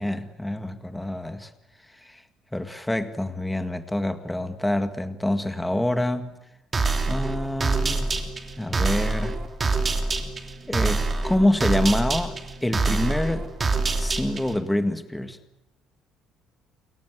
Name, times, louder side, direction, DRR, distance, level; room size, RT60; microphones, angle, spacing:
voice 1, 0.0-1.5 2.0-2.2 2.5-6.3 7.1-8.2 8.6-9.4 10.7-13.5 14.0-15.4, left 1 dB, 5° left, 1.9 m, -26 dB
sound 1, 6.7-14.6, right 3 dB, 25° right, 2.9 m, -26 dB
29.0 x 23.0 x 8.2 m
cardioid pair, 135°, 0 cm